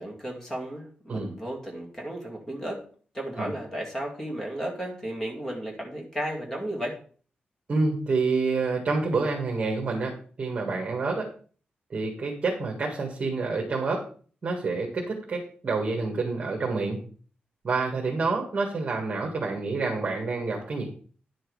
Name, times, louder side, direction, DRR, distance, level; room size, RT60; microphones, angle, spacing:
voice 1, 0.0-2.8 3.1-7.0, right 1 dB, 15° left, -1 dB, 2.3 m, -34 dB
voice 2, 7.7-11.3 11.9-14.0 14.4-17.0 17.6-20.9, right 3 dB, 35° right, 0 dB, 1.8 m, -28 dB
10.0 x 6.4 x 4.8 m, 0.43 s
wide cardioid pair, 175°, 3 cm